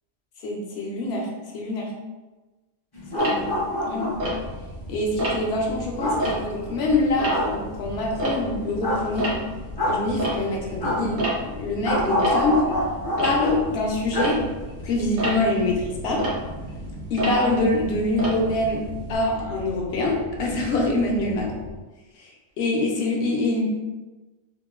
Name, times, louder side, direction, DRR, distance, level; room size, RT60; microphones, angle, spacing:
voice 1, 0.4-1.9 3.1-3.5 3.9-4.2 4.9-9.3 9.9-12.6 13.2-14.4 14.8-16.3 17.1-21.5 22.2-23.6, left 2 dB, 65° left, -1 dB, 0.7 m, -25 dB
sound 1, 2.9-4.3 6.0-6.2 7.3-7.5 8.8-9.0 9.8-10.0 10.8-11.0 11.8-13.5 14.1-14.3 14.6-14.7, equal, 40° left, 0.3 m, -25 dB
Tick-tock, 3.2-4.8 5.2-5.6 6.0-8.8 9.0-19.2, right 1 dB, 85° right, 1.1 m, -31 dB
sound 2, 4.1-21.8, left 1 dB, 60° right, 0.9 m, -39 dB
2.8 x 2.1 x 2.2 m, 1.2 s
omnidirectional pair, 1.3 m